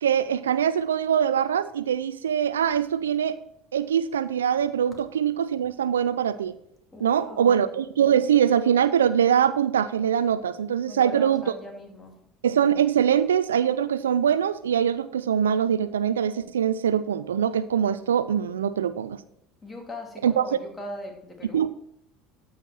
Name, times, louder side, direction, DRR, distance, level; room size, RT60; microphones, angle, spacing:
voice 1, 0.0-3.4 3.7-6.5 7.0-11.4 12.4-19.2 20.2-20.4 21.5-21.7, right 8 dB, 80° right, 15 dB, 0.4 m, -23 dB
voice 2, 6.9-7.7 10.9-12.1 19.6-21.6, left 1 dB, 20° left, 3 dB, 2.5 m, -39 dB
13.5 x 5.6 x 4.4 m, 0.71 s
figure-of-eight pair, 70°, 0 cm